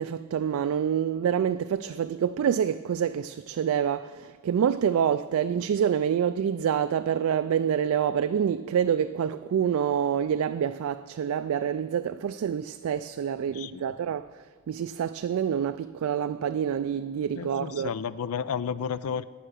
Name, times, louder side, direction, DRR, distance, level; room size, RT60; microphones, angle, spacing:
voice 1, 0.0-17.9, right 8 dB, 75° right, 0.3 m, -27 dB
voice 2, 13.5-13.9 17.3-19.2, left 7 dB, 80° left, 0.4 m, -32 dB
9.9 x 8.8 x 6.5 m
head